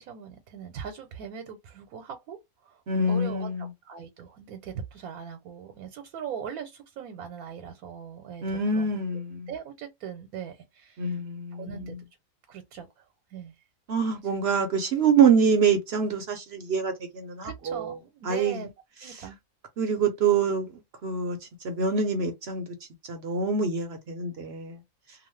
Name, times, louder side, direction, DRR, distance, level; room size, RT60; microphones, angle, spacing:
voice 1, 0.0-8.9 9.5-11.2 11.5-12.0 12.5-13.1 13.3-13.5 14.2-14.3 17.4-18.7 19.0-19.4, right 7 dB, 80° right, 1.1 m, -40 dB
voice 2, 2.9-3.7 8.4-9.5 11.0-12.0 13.9-17.9 18.3-18.6 19.1-19.2 19.8-20.7 21.0-21.4 21.6-22.6 23.1-24.8, right 5 dB, 60° right, 0.7 m, -25 dB
2.9 x 2.1 x 3.1 m
omnidirectional pair, 1.5 m